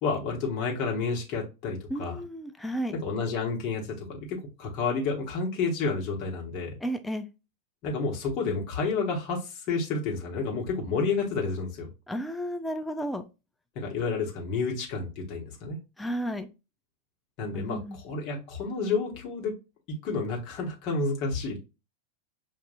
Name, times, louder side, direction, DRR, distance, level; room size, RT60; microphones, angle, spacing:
voice 1, 0.0-2.2 3.0-6.8 7.8-11.9 13.7-15.8 17.4-19.5 19.9-21.6, left 4 dB, 40° left, 1.3 m, -30 dB
voice 2, 1.9-3.0 6.8-7.3 12.1-13.3 16.0-16.5 17.5-18.0, equal, 5° left, 0.5 m, -33 dB
5.9 x 2.5 x 2.6 m
figure-of-eight pair, 90°, 0 cm